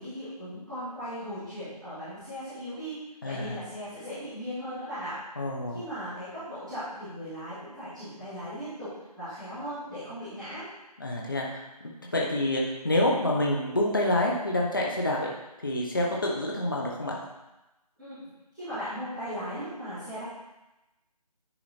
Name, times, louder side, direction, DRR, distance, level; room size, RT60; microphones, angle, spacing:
voice 1, 0.0-3.0 3.2-5.1 5.7-8.9 9.2-10.7 18.0-18.2 18.5-20.2, equal, ahead, -26 dB, 1.8 m, -37 dB
voice 2, 3.2-3.6 5.4-5.8 11.0-11.6 12.1-15.2 15.6-17.2, left 1 dB, 30° left, -2 dB, 0.9 m, -27 dB
9.9 x 4.6 x 4.2 m, 1.0 s
figure-of-eight pair, 175°, 21 cm